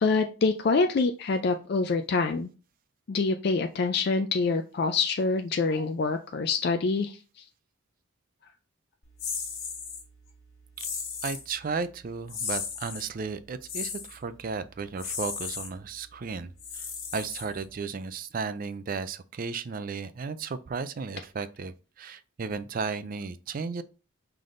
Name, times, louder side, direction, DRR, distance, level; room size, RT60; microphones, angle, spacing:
voice 1, 0.0-2.5 3.1-7.4, left 4 dB, 50° left, 0.3 m, -26 dB
sound 1, 9.2-10.0 10.8-11.5 12.3-13.1 13.7-14.2 15.0-15.7 16.6-17.8, left 5 dB, 75° left, 1.7 m, -35 dB
voice 2, 11.2-16.9 17.1-23.8, right 5 dB, 40° right, 0.3 m, -34 dB
5.7 x 3.4 x 2.5 m
head